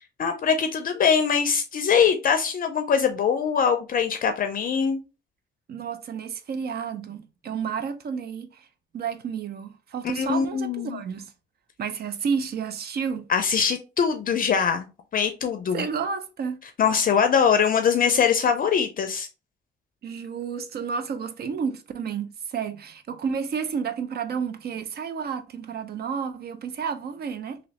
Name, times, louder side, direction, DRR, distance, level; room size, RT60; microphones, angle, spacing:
voice 1, 0.2-5.0 10.0-11.0 13.3-14.9 15.1-15.8 16.8-19.3, left 7 dB, 45° left, 0.5 m, -22 dB
voice 2, 5.7-8.7 8.9-11.3 11.8-13.3 15.7-16.6 20.0-27.6, right 6 dB, 50° right, 0.5 m, -31 dB
3.0 x 2.8 x 2.8 m
cardioid pair, 90°, 20 cm